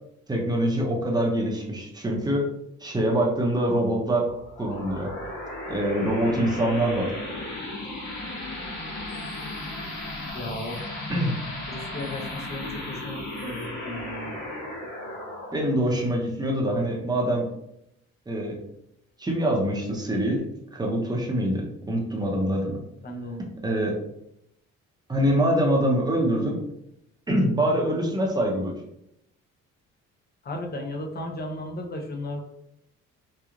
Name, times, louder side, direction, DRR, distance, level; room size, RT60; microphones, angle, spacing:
voice 1, 0.3-2.4 2.8-4.3 4.6-5.1 5.7-7.1 11.1-11.3 15.5-17.5 18.3-18.6 19.2-20.5 20.7-22.8 23.6-24.0 25.1-26.6 27.3-28.7, right 1 dB, 15° right, -1 dB, 0.8 m, -24 dB
sound 1, 4.2-17.4, left 1 dB, 70° left, 1.0 m, -36 dB
voice 2, 10.3-10.8 11.7-14.4 23.0-23.4 30.4-32.4, left 1 dB, 35° left, 1 dB, 0.6 m, -35 dB
3.0 x 2.4 x 2.4 m, 0.79 s
cardioid pair, 90°, 30 cm